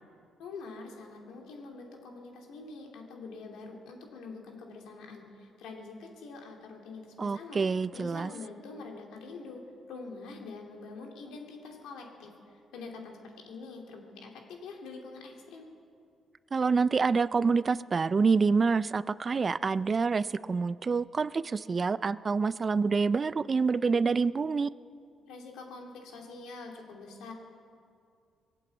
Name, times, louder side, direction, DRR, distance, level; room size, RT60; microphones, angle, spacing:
voice 1, 0.4-7.6 7.9-9.6 9.9-12.3 12.7-15.7 25.3-27.3, left 3 dB, 90° left, 1 dB, 2.4 m, -45 dB
voice 2, 7.2-8.3 16.5-24.7, right 4 dB, 35° right, 17 dB, 0.3 m, -27 dB
20.0 x 8.5 x 8.2 m, 2.3 s
cardioid pair, 90°, 0 cm